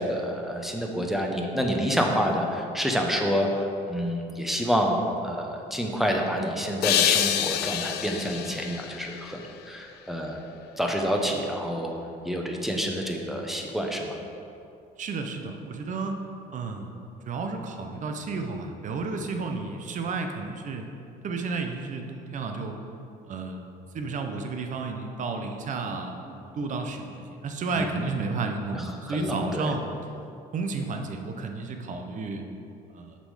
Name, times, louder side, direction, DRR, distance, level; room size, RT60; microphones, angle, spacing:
voice 1, 0.0-5.0 5.2-9.4 9.7-10.4 10.8-11.9 12.2-14.2 27.7-28.0 28.7-29.7, equal, ahead, 1 dB, 0.9 m, -28 dB
sound 1, 6.8-10.0, left 11 dB, 70° left, 0.4 m, -27 dB
voice 2, 15.0-16.2 16.5-17.0 17.2-20.9 21.2-22.8 23.3-23.6 23.9-29.8 30.5-32.5 32.9-33.2, right 4 dB, 50° right, 4 dB, 0.8 m, -32 dB
6.8 x 5.3 x 5.6 m, 2.6 s
cardioid pair, 110°, 17 cm